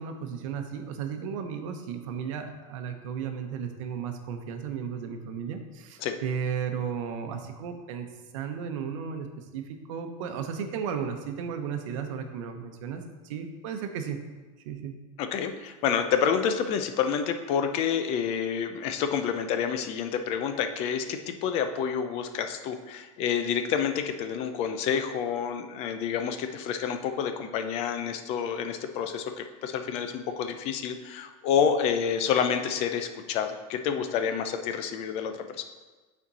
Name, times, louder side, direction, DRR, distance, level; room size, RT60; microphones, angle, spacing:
voice 1, 0.0-8.1 8.3-14.2 14.6-14.9, right 7 dB, 65° right, 6 dB, 0.9 m, -34 dB
voice 2, 15.2-35.6, left 7 dB, 35° left, 8 dB, 0.5 m, -28 dB
8.7 x 4.4 x 4.1 m, 1.3 s
supercardioid pair, 165°, 17 cm